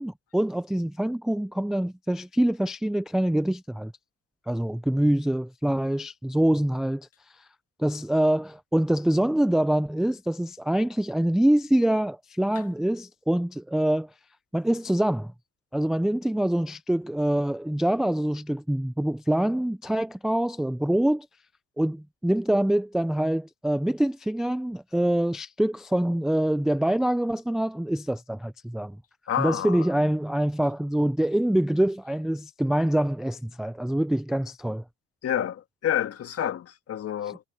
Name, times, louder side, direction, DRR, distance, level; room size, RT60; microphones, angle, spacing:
voice 1, 0.0-3.9 4.5-7.1 7.8-14.1 14.5-15.3 15.7-21.3 21.8-29.0 29.4-34.8 37.2-37.4, right 1 dB, ahead, 0.4 m, -25 dB
voice 2, 29.3-29.8 35.2-37.4, left 10 dB, 45° left, 1.9 m, -29 dB
cardioid pair, 120°, 33 cm